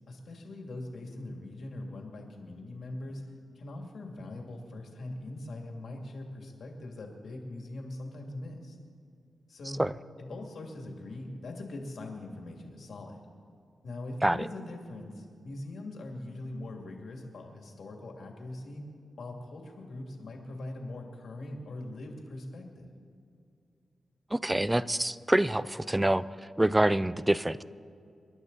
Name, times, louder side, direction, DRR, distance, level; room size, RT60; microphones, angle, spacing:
voice 1, 0.1-3.2 3.5-8.8 9.5-9.8 10.2-13.2 13.8-18.8 19.2-22.9, left 2 dB, 70° left, 1 dB, 2.5 m, -41 dB
voice 2, 24.3-27.6, right 1 dB, 10° right, 17 dB, 0.4 m, -26 dB
27.5 x 11.5 x 4.1 m, 2.4 s
wide cardioid pair, 100°, 0 cm